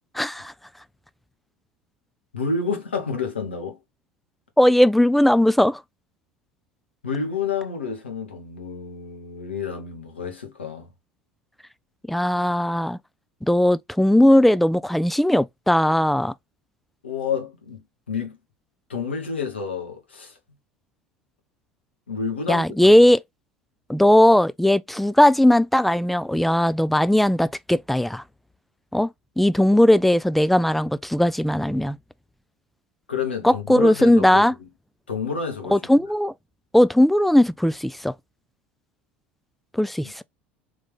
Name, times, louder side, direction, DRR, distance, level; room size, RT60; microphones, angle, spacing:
voice 1, 0.1-0.5 4.6-5.8 12.1-13.0 13.4-16.3 22.5-23.2 23.9-28.2 28.9-29.1 29.4-32.0 33.4-34.5 35.7-36.3 36.7-38.1 39.7-40.2, left 1 dB, ahead, 0.3 m, -18 dB
voice 2, 2.3-3.8 7.0-10.9 17.0-18.4 18.9-20.4 22.1-22.9 33.1-34.7 35.1-35.8, left 5 dB, 85° left, 1.5 m, -29 dB
3.7 x 3.2 x 3.4 m
figure-of-eight pair, 70°, 6 cm